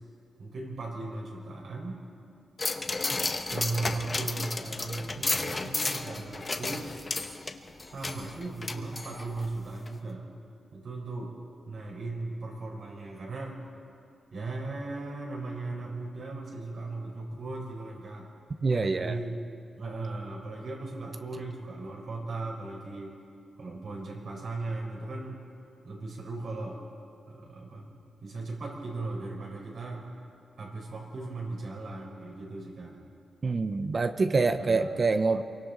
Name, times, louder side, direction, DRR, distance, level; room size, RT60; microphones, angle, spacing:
voice 1, 0.4-2.0 3.5-7.1 7.8-10.3 10.7-13.6 14.3-18.3 18.9-19.4 19.8-23.2 23.6-25.4 25.8-26.8 27.3-30.0 30.6-33.0 34.6-34.9, right 3 dB, 65° right, -3 dB, 4.8 m, -37 dB
sound 1, 2.6-9.5 9.9-10.0, left 3 dB, 30° left, 1.0 m, -33 dB
voice 2, 18.6-19.1 33.4-35.4, right 3 dB, 35° right, 9 dB, 0.8 m, -26 dB
28.0 x 24.0 x 4.0 m, 2.5 s
wide cardioid pair, 120°, 0 cm